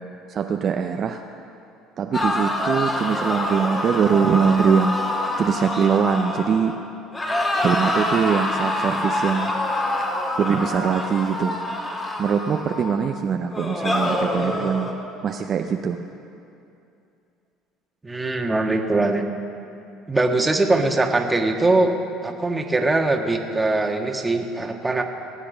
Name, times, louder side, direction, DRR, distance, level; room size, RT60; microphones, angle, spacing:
voice 1, 0.3-1.2 2.0-6.7 7.6-9.5 10.4-11.6 12.2-14.9 15.2-16.0, right 6 dB, 45° right, 4 dB, 0.7 m, -22 dB
sound 1, 2.1-6.8 7.1-13.0 13.5-14.9, left 1 dB, 25° left, 2.3 m, -26 dB
voice 2, 18.0-19.2 20.1-21.9 22.2-25.0, right 2 dB, 15° right, 3 dB, 1.5 m, -21 dB
20.0 x 8.5 x 5.3 m, 2.6 s
hypercardioid pair, 75°, 0 cm